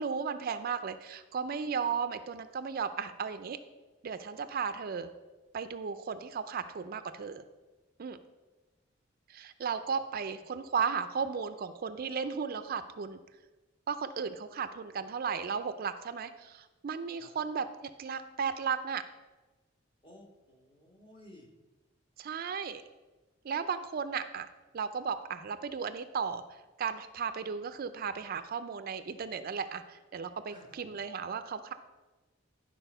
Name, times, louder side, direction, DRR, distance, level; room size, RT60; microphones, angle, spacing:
voice 1, 0.0-3.6 4.0-5.1 5.5-7.4 8.0-8.2 9.3-13.2 13.9-19.0 22.2-22.8 23.4-24.5 24.7-31.7, right 6 dB, 50° right, 10 dB, 0.4 m, -35 dB
voice 2, 20.0-21.5 30.5-30.9, left 1 dB, 30° left, 0 dB, 1.5 m, -56 dB
11.0 x 4.2 x 5.5 m, 1.2 s
head